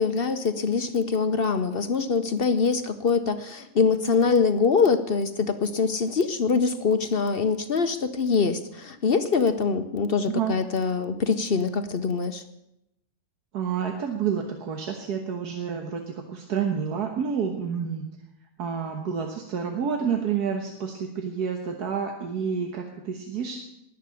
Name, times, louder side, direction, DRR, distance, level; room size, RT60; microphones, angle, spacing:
voice 1, 0.0-12.4, left 5 dB, 45° left, 9 dB, 0.8 m, -24 dB
voice 2, 13.5-18.1 18.6-23.6, right 7 dB, 85° right, 3 dB, 1.8 m, -29 dB
19.5 x 6.8 x 8.4 m, 0.85 s
omnidirectional pair, 1.6 m